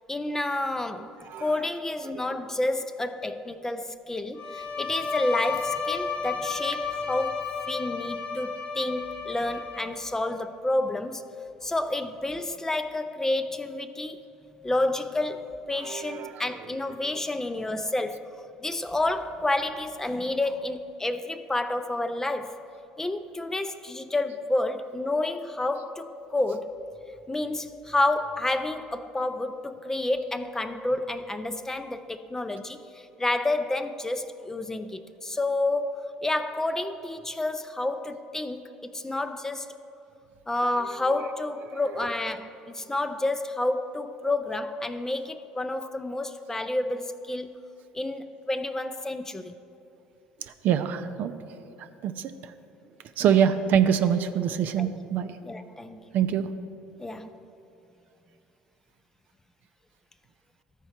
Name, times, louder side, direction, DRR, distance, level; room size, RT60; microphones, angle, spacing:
voice 1, 0.1-11.2 11.6-14.2 14.6-18.3 18.6-22.6 23.0-26.8 27.3-39.7 40.5-47.5 47.9-49.6 53.2-53.3 54.8-54.9 55.5-56.0 57.0-57.4, left 2 dB, 15° left, 0.4 m, -29 dB
Bowed string instrument, 4.4-10.2, left 5 dB, 40° left, 0.9 m, -33 dB
voice 2, 15.8-16.4 40.8-41.1 50.4-51.3 51.8-52.5 53.2-55.3 56.1-56.5, right 8 dB, 60° right, 0.5 m, -25 dB
13.5 x 4.6 x 4.3 m
hypercardioid pair, 75°, 3 cm